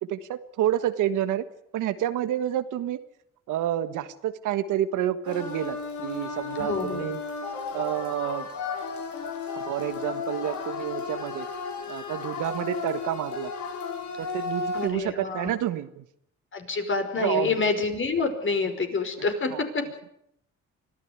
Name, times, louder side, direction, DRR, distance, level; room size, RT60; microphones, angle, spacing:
voice 1, 0.0-1.4 1.7-3.0 3.5-7.2 7.7-8.5 9.5-11.5 11.9-13.5 14.2-16.0 17.1-17.6 19.5-19.6, right 11 dB, 85° right, 11 dB, 1.5 m, -29 dB
sound 1, 5.2-14.9, left 4 dB, 70° left, 5.2 m, -34 dB
voice 2, 6.6-7.1 14.7-15.5 16.5-19.9, left 4 dB, 40° left, 6 dB, 5.3 m, -27 dB
24.5 x 14.5 x 9.7 m, 0.74 s
cardioid pair, 90°, 30 cm